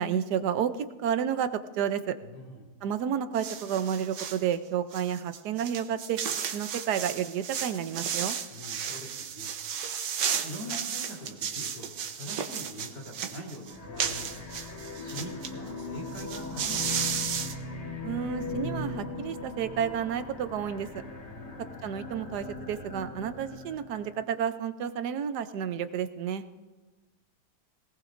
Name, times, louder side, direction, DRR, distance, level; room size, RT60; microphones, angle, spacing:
voice 1, 0.0-2.1 2.8-6.2 6.5-8.4 18.0-20.9 21.8-26.4, right 8 dB, 75° right, 11 dB, 1.3 m, -31 dB
voice 2, 2.2-2.7 8.5-9.5 10.4-14.4 15.0-17.2 21.3-21.7, equal, 85° left, -2 dB, 4.3 m, -43 dB
sound 1, 3.3-4.4 4.9-15.5 15.8-15.9 16.1-17.5, right 7 dB, 90° right, 1.5 m, -34 dB
sound 2, 13.7-24.2, left 3 dB, 25° left, 1.0 m, -39 dB
21.5 x 19.0 x 2.6 m, 1.2 s
omnidirectional pair, 1.8 m